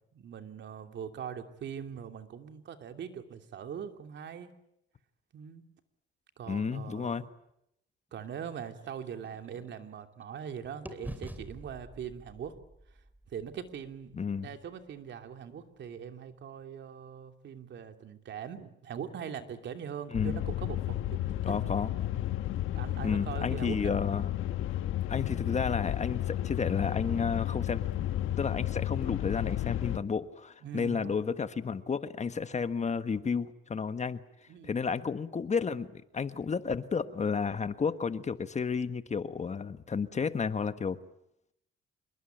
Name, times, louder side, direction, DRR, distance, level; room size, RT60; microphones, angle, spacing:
voice 1, 0.1-4.5 5.3-5.6 6.4-7.2 8.1-12.5 13.3-14.1 14.4-21.1 21.5-21.6 22.7-24.0 30.6-31.1 34.5-34.8, right 8 dB, 65° right, 6 dB, 2.9 m, -41 dB
voice 2, 6.5-7.2 14.1-14.5 20.1-20.4 21.4-21.9 23.0-24.3 25.1-27.8 28.4-34.2 34.6-41.0, left 5 dB, 35° left, 11 dB, 1.5 m, -32 dB
sound 1, 8.2-10.5 10.9-14.8, right 1 dB, 10° right, 3.0 m, -48 dB
sound 2, 20.1-30.0, left 13 dB, 85° left, 1.5 m, -32 dB
26.5 x 22.0 x 9.2 m, 0.79 s
cardioid pair, 90°, 20 cm